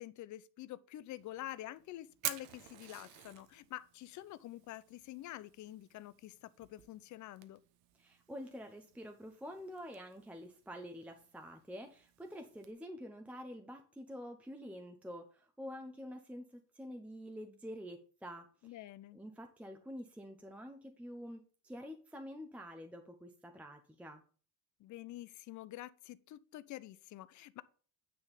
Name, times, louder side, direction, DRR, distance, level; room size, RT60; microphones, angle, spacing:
voice 1, 0.0-7.6 18.6-19.2 24.8-27.6, left 14 dB, 50° left, 0.6 m, -47 dB
Fire, 1.2-12.7, right 12 dB, 65° right, 1.1 m, -50 dB
voice 2, 8.0-18.9 19.1-24.2, equal, 5° right, 0.7 m, -48 dB
9.8 x 3.9 x 6.7 m
cardioid pair, 140°, 39 cm